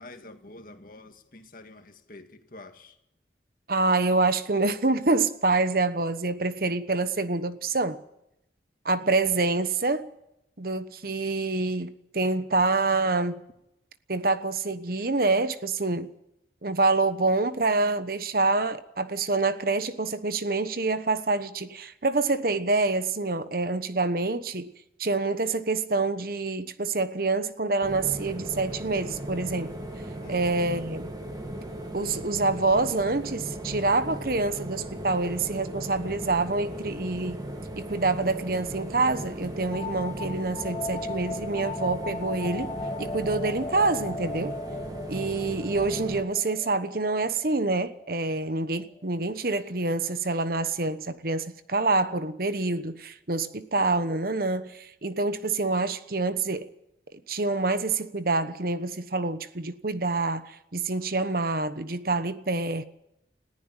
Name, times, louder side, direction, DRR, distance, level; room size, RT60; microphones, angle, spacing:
voice 1, 0.0-3.0 30.2-30.8, left 2 dB, 50° left, 2.1 m, -47 dB
voice 2, 3.7-8.0 8.8-10.1 10.6-13.4 14.1-16.1 16.6-24.7 25.0-29.7 30.3-31.1 31.9-37.4 37.8-44.6 45.1-56.7 57.3-62.8, right 3 dB, 50° right, 1.1 m, -26 dB
sound 1, 27.8-46.2, right 1 dB, 20° right, 2.4 m, -37 dB
sound 2, 39.7-49.1, left 3 dB, 20° left, 1.0 m, -38 dB
20.5 x 15.0 x 9.1 m
head